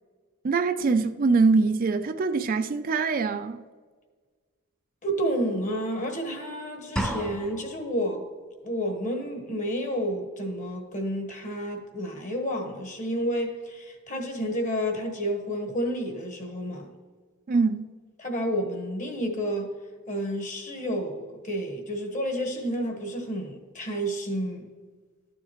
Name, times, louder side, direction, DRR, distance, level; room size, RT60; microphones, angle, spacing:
voice 1, 0.4-3.6 17.5-17.9, right 4 dB, 40° right, 0.4 m, -23 dB
voice 2, 5.0-8.2 8.6-16.9 18.2-19.7 20.1-24.7, equal, 35° left, 1.3 m, -30 dB
sound 1, 7.0-7.9, equal, 5° left, 0.7 m, -31 dB
12.5 x 7.1 x 3.0 m
head